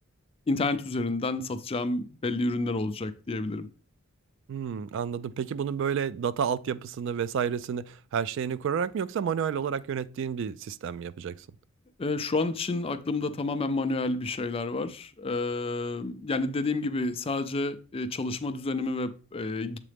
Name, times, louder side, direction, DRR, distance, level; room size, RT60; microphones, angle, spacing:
voice 1, 0.5-3.7 12.0-19.8, left 3 dB, 30° left, 0.4 m, -30 dB
voice 2, 4.5-11.5, right 7 dB, 60° right, 0.3 m, -30 dB
7.4 x 3.8 x 3.4 m
head